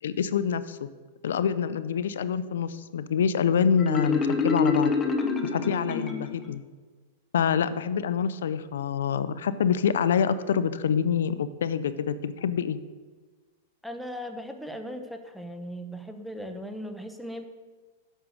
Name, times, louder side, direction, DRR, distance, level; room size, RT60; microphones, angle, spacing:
voice 1, 0.0-0.9 1.2-4.9 5.4-6.6 7.3-12.8, left 7 dB, 80° left, 14 dB, 0.6 m, -26 dB
Marimba xylophone, 3.8-6.5, left 4 dB, 20° left, 1.1 m, -26 dB
voice 2, 13.8-17.4, equal, ahead, 6 dB, 1.0 m, -38 dB
9.0 x 6.0 x 6.5 m, 1.4 s
hypercardioid pair, 130°, 0 cm